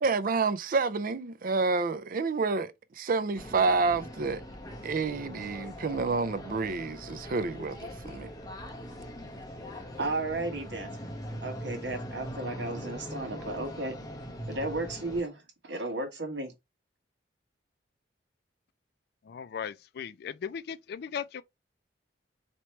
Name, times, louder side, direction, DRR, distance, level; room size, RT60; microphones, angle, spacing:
voice 1, 0.0-4.4 4.8-8.3, right 4 dB, 50° right, 0.4 m, -29 dB
sound 1, 3.4-15.2, equal, 20° left, 1.0 m, -41 dB
voice 2, 10.0-10.9 11.4-14.0 14.5-16.5, right 2 dB, 70° right, 1.3 m, -34 dB
voice 3, 19.3-21.4, left 7 dB, 60° left, 0.4 m, -37 dB
3.1 x 2.9 x 4.4 m
head